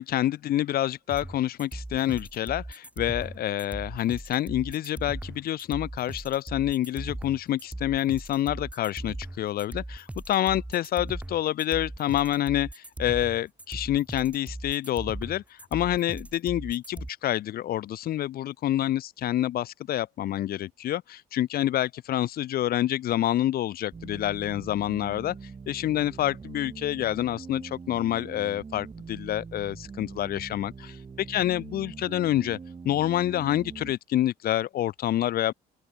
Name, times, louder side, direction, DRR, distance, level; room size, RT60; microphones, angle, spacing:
voice 1, 0.0-25.3 25.7-31.0 31.3-32.6 32.8-35.5, left 13 dB, 65° left, 1.5 m, -27 dB
sound 1, 1.1-17.1, right 1 dB, 10° right, 2.5 m, -38 dB
sound 2, 23.9-33.9, right 5 dB, 25° right, 2.7 m, -43 dB
open air
cardioid pair, 110°, 17 cm